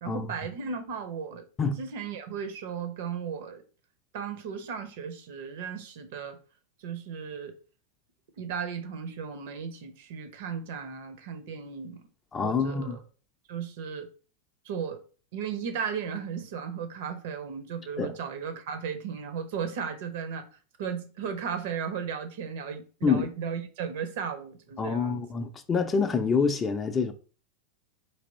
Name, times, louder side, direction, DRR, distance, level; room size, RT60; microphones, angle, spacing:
voice 1, 0.0-1.5 1.8-3.6 4.1-6.4 6.8-7.6 8.4-12.1 12.4-13.0 13.5-14.1 14.6-15.0 15.3-20.5 20.8-25.2, right 6 dB, 50° right, 0.7 m, -35 dB
voice 2, 12.3-13.0 18.0-18.1 23.0-23.3 24.8-27.1, left 5 dB, 20° left, 0.5 m, -26 dB
3.3 x 2.9 x 4.0 m
figure-of-eight pair, 90°, 0 cm